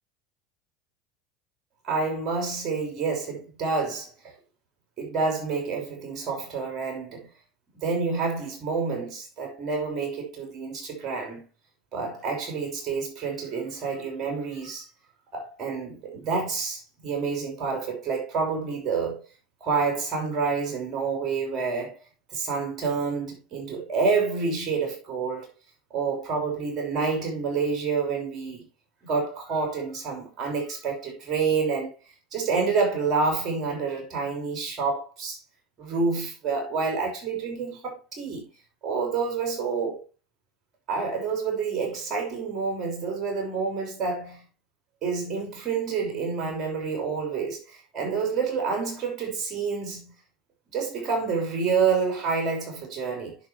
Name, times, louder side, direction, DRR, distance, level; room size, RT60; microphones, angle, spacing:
voice 1, 1.8-4.1 5.0-7.3 7.8-11.5 11.9-14.9 15.3-19.2 19.6-22.0 22.3-25.5 25.9-28.7 29.0-31.9 32.3-35.4 35.8-38.5 38.8-40.0 40.9-44.4 45.0-50.1 50.7-53.4, right 5 dB, 40° right, 5.7 m, -28 dB
9.1 x 7.4 x 3.3 m
hypercardioid pair, 75°, 0 cm